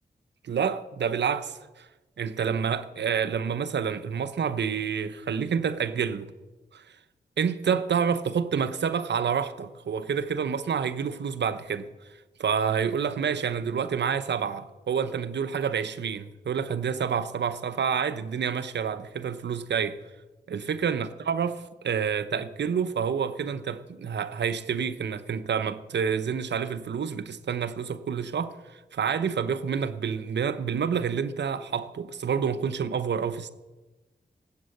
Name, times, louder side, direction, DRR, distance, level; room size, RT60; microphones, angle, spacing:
voice 1, 0.4-1.9 2.2-6.3 6.7-6.8 7.4-11.9 12.4-20.0 20.5-33.5, right 7 dB, 80° right, 0.9 m, -28 dB
19.0 x 8.0 x 7.9 m
cardioid pair, 45°, 18 cm